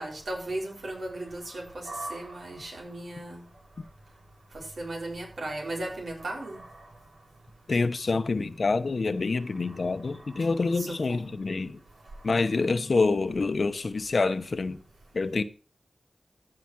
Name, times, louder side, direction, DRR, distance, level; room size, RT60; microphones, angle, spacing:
voice 1, 0.0-3.4 4.8-6.7 10.4-10.5 10.7-11.3, right 1 dB, 85° right, 4.1 m, -36 dB
voice 2, 7.7-11.8 12.2-14.8 15.1-15.4, left 3 dB, 70° left, 0.9 m, -27 dB
15.0 x 5.0 x 6.2 m
wide cardioid pair, 55°, 0 cm